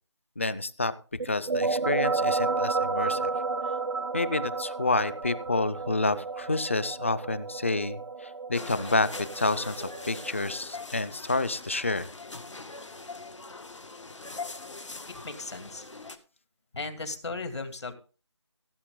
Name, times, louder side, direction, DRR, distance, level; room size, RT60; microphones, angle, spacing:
voice 1, 0.4-0.9 1.2-3.3 4.1-12.1, left 2 dB, 25° left, 16 dB, 0.5 m, -29 dB
sound 1, 1.2-10.6, right 4 dB, 85° right, 0.9 m, -31 dB
sound 2, 8.5-16.2, left 3 dB, 85° left, 2.1 m, -42 dB
voice 2, 15.1-15.9 16.7-17.9, left 3 dB, 65° left, 7 dB, 2.6 m, -36 dB
16.5 x 7.9 x 3.8 m, 0.35 s
figure-of-eight pair, 175°, 15 cm